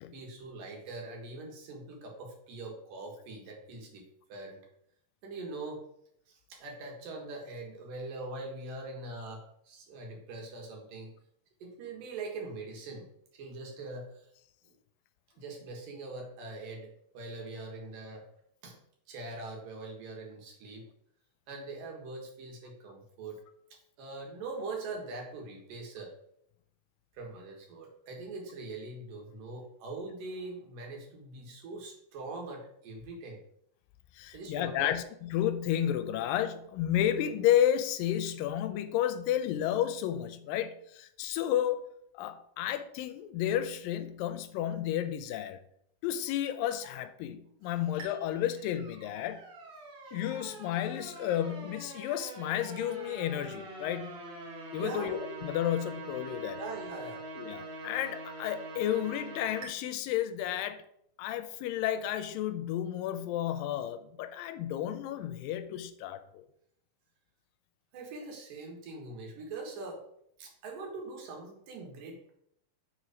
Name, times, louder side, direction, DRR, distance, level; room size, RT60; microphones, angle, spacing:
voice 1, 0.1-4.6 5.2-5.8 6.3-11.1 11.6-13.1 13.3-14.3 14.6-14.8 15.4-18.2 18.6-18.8 19.1-20.9 21.5-23.4 24.0-26.1 27.1-33.4 34.3-34.9 54.8-55.2 56.6-57.2 67.9-70.0 70.4-72.3, right 3 dB, 75° right, 3.1 m, -42 dB
voice 2, 34.2-41.9 42.1-45.6 46.0-49.4 50.1-54.2 54.7-56.6 57.4-60.8 61.2-66.4, left 11 dB, 85° left, 2.2 m, -32 dB
sound 1, 48.0-59.7, right 2 dB, 50° right, 2.0 m, -44 dB
6.0 x 4.9 x 5.0 m
omnidirectional pair, 4.0 m